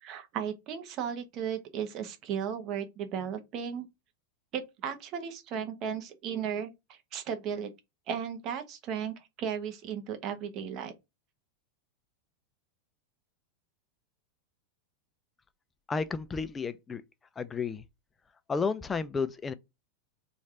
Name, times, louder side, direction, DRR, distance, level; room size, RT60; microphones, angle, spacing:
voice 1, 0.0-3.9 4.5-7.7 8.1-10.9, right 8 dB, 45° right, 0.9 m, -35 dB
voice 2, 15.9-17.0 17.4-17.8 18.5-19.5, left 5 dB, 20° left, 0.4 m, -32 dB
3.2 x 2.4 x 4.1 m
hypercardioid pair, 120°, 0 cm